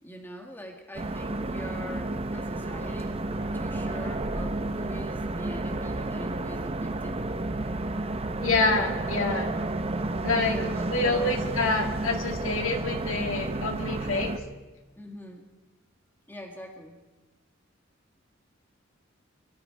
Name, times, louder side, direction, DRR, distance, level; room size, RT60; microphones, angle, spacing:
voice 1, 0.0-7.3 10.3-11.4 15.0-15.5 16.3-17.0, equal, 10° left, 1 dB, 2.0 m, -43 dB
sound 1, 1.0-14.4, right 2 dB, 30° right, 0.7 m, -31 dB
voice 2, 8.4-9.5 10.2-10.6 10.9-14.4, left 3 dB, 80° left, 2 dB, 2.2 m, -27 dB
23.5 x 13.0 x 4.7 m, 1.2 s
head